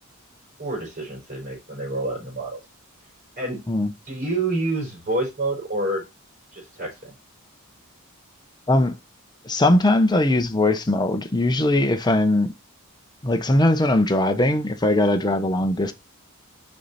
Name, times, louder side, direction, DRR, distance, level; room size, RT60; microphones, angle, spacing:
voice 1, 0.6-2.6 3.4-3.6 4.1-6.0 6.5-7.1, right 2 dB, 40° right, 4.9 m, -28 dB
voice 2, 9.4-12.5 13.2-15.9, left 1 dB, 20° left, 0.9 m, -20 dB
6.3 x 5.6 x 4.1 m
head